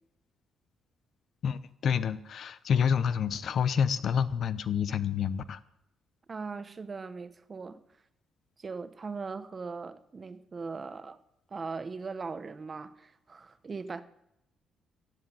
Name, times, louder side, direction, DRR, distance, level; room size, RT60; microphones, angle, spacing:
voice 1, 1.4-5.6, left 7 dB, 60° left, 0.8 m, -28 dB
voice 2, 6.3-7.8 8.6-11.2 11.5-14.0, right 4 dB, 35° right, 1.0 m, -39 dB
15.0 x 8.1 x 8.5 m
cardioid pair, 90°, 0 cm